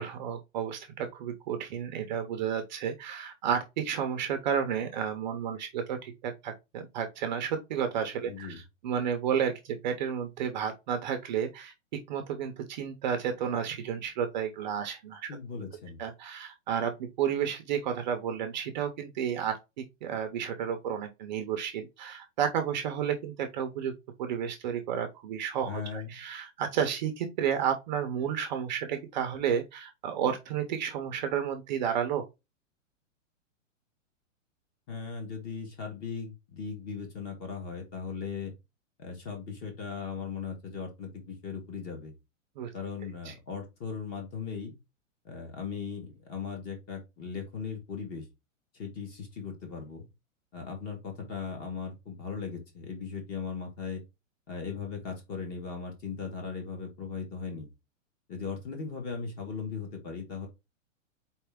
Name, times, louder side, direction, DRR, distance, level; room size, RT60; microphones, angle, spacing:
voice 1, 0.0-8.6 8.8-11.7 12.1-15.3 16.0-19.5 20.0-23.9 24.2-32.2 42.6-42.7 43.2-43.3, right 8 dB, 35° right, 0.7 m, -31 dB
voice 2, 8.2-8.6 15.3-16.0 25.6-26.1 34.9-38.5 39.0-42.1 42.7-44.7 45.2-48.3 48.7-50.0 50.5-54.0 54.5-57.7 58.3-60.5, left 5 dB, 25° left, 1.5 m, -38 dB
4.3 x 3.3 x 3.5 m
hypercardioid pair, 160°, 39 cm